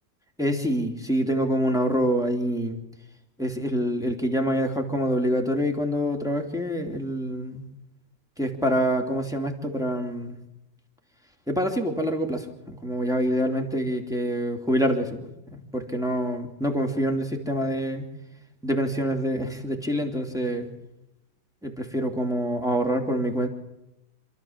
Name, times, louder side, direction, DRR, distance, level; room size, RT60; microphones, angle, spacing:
voice 1, 0.4-2.8 3.4-7.7 8.4-10.4 11.5-18.1 18.6-20.7 21.6-23.5, equal, ahead, 2 dB, 2.8 m, -26 dB
28.0 x 13.5 x 7.4 m, 0.93 s
omnidirectional pair, 2.0 m